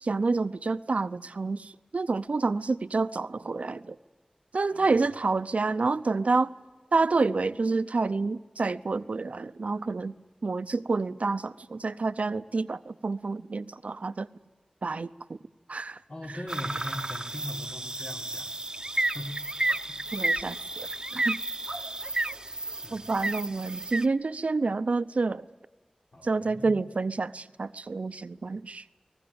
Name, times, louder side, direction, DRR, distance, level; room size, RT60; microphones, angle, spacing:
voice 1, 0.0-4.0 4.5-6.5 6.9-10.1 10.4-14.3 14.8-15.4 15.7-16.0 20.1-20.9 21.1-21.4 22.9-25.4 26.2-28.9, right 3 dB, 75° right, 14 dB, 0.7 m, -28 dB
voice 2, 16.1-18.5 19.1-19.3 20.2-20.3 22.8-23.1 26.1-26.8, left 1 dB, 70° left, 0 dB, 4.0 m, -40 dB
sound 1, 16.5-24.1, right 2 dB, 35° right, 0.8 m, -32 dB
23.5 x 19.0 x 8.7 m, 1.3 s
wide cardioid pair, 40°, 2 cm